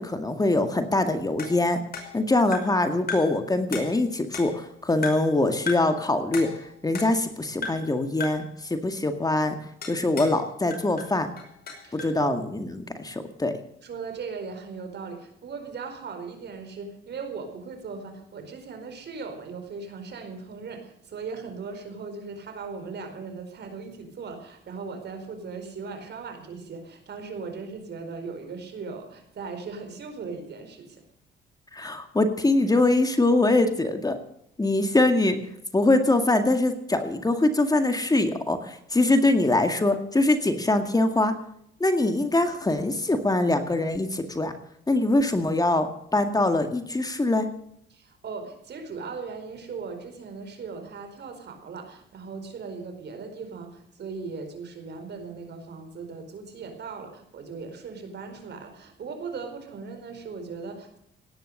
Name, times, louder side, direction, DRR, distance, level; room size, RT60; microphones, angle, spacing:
voice 1, 0.0-1.8 2.1-6.5 6.8-9.6 9.8-11.3 11.9-12.7 13.0-13.6 31.7-34.2 34.6-35.4 35.7-41.3 41.8-44.5 44.9-47.5, left 2 dB, 20° left, 7 dB, 2.0 m, -23 dB
sound 1, 1.4-2.8 3.1-3.4 3.7-4.7 5.0-5.4 5.7-6.0 6.3-7.3 7.6-7.9 8.2-8.5 9.8-10.4 10.7-12.2, left 4 dB, 50° left, 5.5 m, -36 dB
voice 2, 11.8-12.4 13.8-31.0 47.9-61.0, right 4 dB, 60° right, 6 dB, 4.7 m, -38 dB
17.5 x 10.5 x 6.6 m, 0.71 s
cardioid pair, 90°, 20 cm